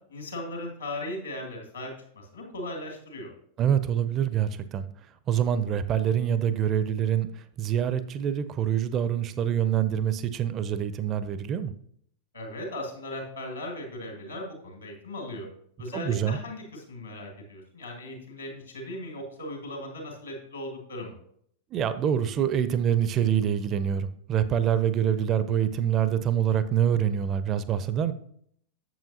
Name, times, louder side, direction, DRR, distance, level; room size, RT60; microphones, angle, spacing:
voice 1, 0.1-3.3 12.3-15.5 15.8-21.2, left 1 dB, 75° left, 2 dB, 2.1 m, -38 dB
voice 2, 3.6-4.9 5.3-11.7 15.9-16.4 21.7-28.1, right 9 dB, 30° right, 13 dB, 0.4 m, -25 dB
7.6 x 7.2 x 2.8 m, 0.65 s
figure-of-eight pair, 90°, 0 cm